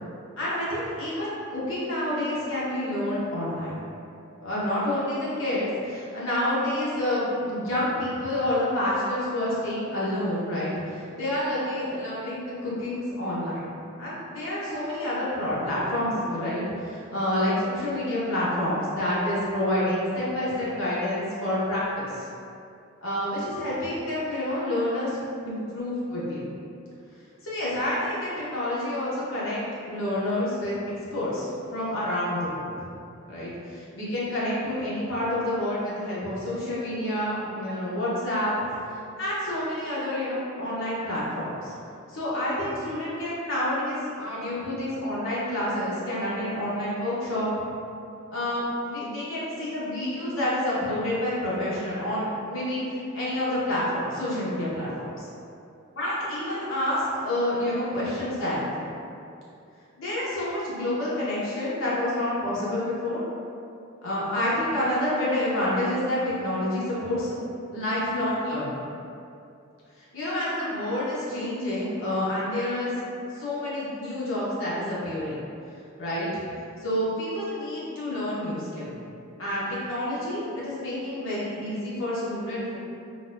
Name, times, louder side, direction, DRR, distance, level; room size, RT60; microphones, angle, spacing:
voice 1, 0.4-3.8 4.4-13.6 14.0-22.3 23.0-25.2 25.4-26.5 27.4-30.7 31.1-32.7 33.3-38.5 39.2-41.7 42.1-47.5 48.3-55.1 55.9-58.9 60.0-63.2 64.0-67.3 67.7-68.9 70.1-72.9 73.3-75.4 76.0-76.4 76.8-78.9 79.4-82.8, left 1 dB, 70° left, -8 dB, 1.0 m, -28 dB
4.0 x 2.2 x 2.5 m, 2.6 s
head